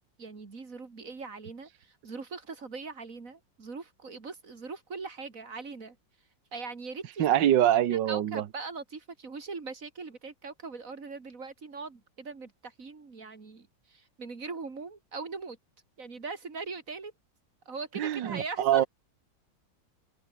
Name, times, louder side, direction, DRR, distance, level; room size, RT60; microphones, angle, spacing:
voice 1, 0.2-6.0 6.5-7.4 7.9-15.6 16.0-17.1 17.7-18.9, right 4 dB, 45° right, 3.0 m, -41 dB
voice 2, 7.2-8.4 18.0-18.9, right 11 dB, 75° right, 1.7 m, -24 dB
open air
omnidirectional pair, 2.0 m